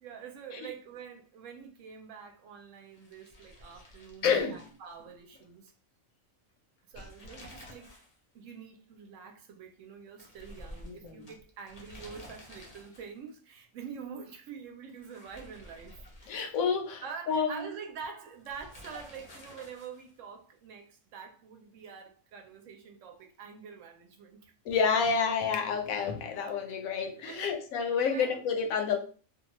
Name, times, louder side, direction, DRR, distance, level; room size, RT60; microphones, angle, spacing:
voice 1, 0.0-5.7 6.9-7.9 8.3-16.6 17.0-24.5 26.8-26.9 27.3-27.6 28.1-28.4, right 6 dB, 70° right, 0.9 m, -46 dB
sound 1, 2.9-5.4 5.7-5.8 6.8-8.2 8.5-8.6 10.2-13.3 14.9-16.9 18.5-20.2, left 1 dB, 40° left, 0.6 m, -51 dB
voice 2, 4.2-4.7 7.0-7.1 10.8-11.3 16.3-17.7 24.6-29.0, left 6 dB, 80° left, 1.0 m, -29 dB
2.6 x 2.2 x 2.9 m
omnidirectional pair, 1.4 m